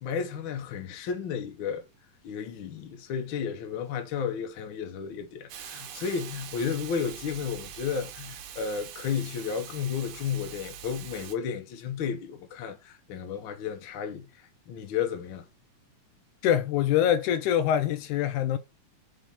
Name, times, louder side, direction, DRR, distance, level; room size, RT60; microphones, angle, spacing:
voice 1, 0.0-1.8 2.2-14.3 14.7-15.4, left 7 dB, 65° left, 1.3 m, -33 dB
Hiss, 5.5-11.4, right 9 dB, 80° right, 2.3 m, -43 dB
voice 2, 16.4-18.6, left 10 dB, 80° left, 1.9 m, -24 dB
5.9 x 3.7 x 5.3 m
omnidirectional pair, 3.7 m